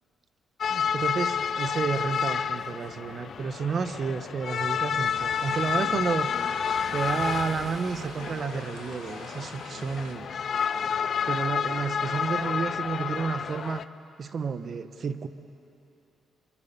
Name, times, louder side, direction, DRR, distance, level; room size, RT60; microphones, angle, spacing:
sound 1, 0.6-13.8, left 7 dB, 55° left, 0.6 m, -30 dB
voice 1, 0.7-6.3 6.9-10.3 11.3-13.8 14.2-15.3, right 5 dB, 50° right, 10 dB, 1.2 m, -31 dB
sound 2, 5.0-10.1, right 4 dB, 90° right, 2.6 m, -45 dB
Waves surf, 6.5-8.6, right 2 dB, 15° right, 0.5 m, -46 dB
26.5 x 24.0 x 7.4 m, 2.8 s
cardioid pair, 90°, 0 cm